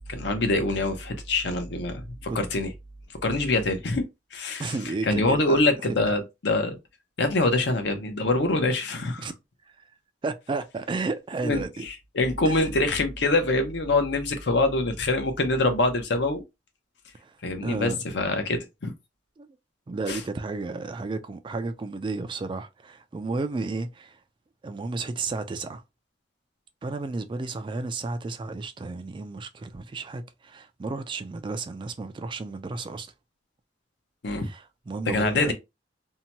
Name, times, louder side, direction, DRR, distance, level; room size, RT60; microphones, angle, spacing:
voice 1, 0.1-2.7 3.1-4.0 4.3-4.7 5.0-6.8 7.2-9.3 11.4-16.4 17.4-18.9 20.1-20.2 34.2-34.5 35.1-35.5, left 2 dB, 65° left, 0.7 m, -25 dB
voice 2, 4.6-6.1 9.2-9.3 9.8-9.9 10.2-11.9 12.4-12.7 17.2-17.4 17.6-18.0 19.4-19.5 19.9-24.2 24.6-25.8 26.8-33.1 34.4-35.5, right 3 dB, 25° right, 0.3 m, -33 dB
2.7 x 2.2 x 2.8 m
head